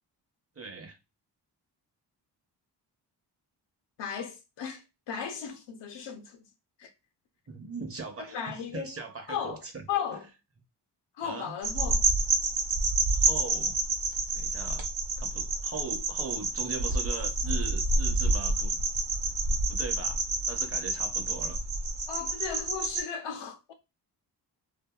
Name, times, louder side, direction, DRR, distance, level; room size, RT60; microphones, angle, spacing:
voice 1, 0.6-1.0 7.5-9.9 11.2-11.5 13.1-13.8 14.3-14.9 15.2-18.8 19.2-21.6, right 4 dB, 35° right, 0.8 m, -40 dB
voice 2, 4.0-6.4 6.8-6.9 8.2-9.0 9.3-10.2 11.2-12.1 22.1-23.7, left 7 dB, 80° left, 0.7 m, -36 dB
sound 1, 11.6-23.0, right 3 dB, 80° right, 0.9 m, -28 dB
2.7 x 2.6 x 2.3 m
cardioid pair, 60°, 42 cm